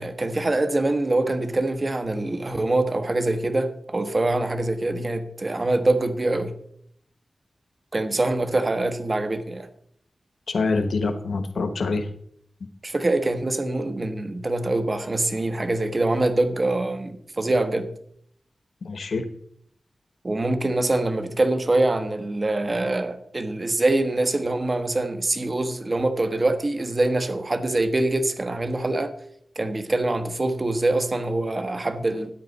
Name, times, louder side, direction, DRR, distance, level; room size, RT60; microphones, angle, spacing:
voice 1, 0.0-6.5 7.9-9.7 12.8-17.9 20.2-29.1 29.5-32.3, right 2 dB, 40° right, 1.2 m, -24 dB
voice 2, 10.5-12.1 18.8-19.2, left 3 dB, 85° left, 1.1 m, -25 dB
13.5 x 9.3 x 4.1 m
wide cardioid pair, 75°, 0 cm